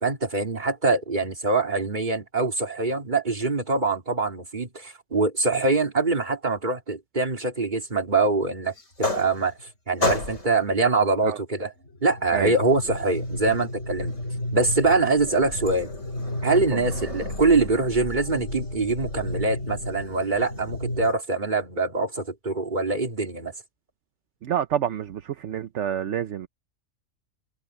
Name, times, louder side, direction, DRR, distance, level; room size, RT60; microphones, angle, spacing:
voice 1, 0.0-9.5 9.9-11.7 12.0-14.1 14.5-15.9 16.4-23.5, right 3 dB, 40° right, 2.8 m, -24 dB
sound 1, 8.8-9.7 10.0-10.7 11.8-21.1, left 1 dB, 80° left, 5.5 m, -31 dB
voice 2, 24.4-26.5, right 9 dB, 75° right, 1.1 m, -28 dB
omnidirectional pair, 1.3 m